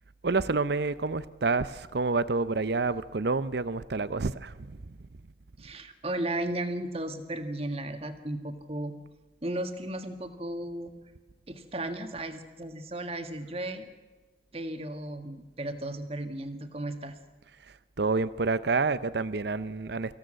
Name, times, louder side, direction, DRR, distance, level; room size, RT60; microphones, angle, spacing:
voice 1, 0.2-5.0 17.6-20.2, right 3 dB, 60° right, 16 dB, 0.6 m, -28 dB
voice 2, 5.6-8.9 9.4-10.9 11.5-13.9 14.5-17.2, right 1 dB, 30° right, 7 dB, 1.6 m, -35 dB
24.5 x 15.5 x 7.7 m, 1.3 s
head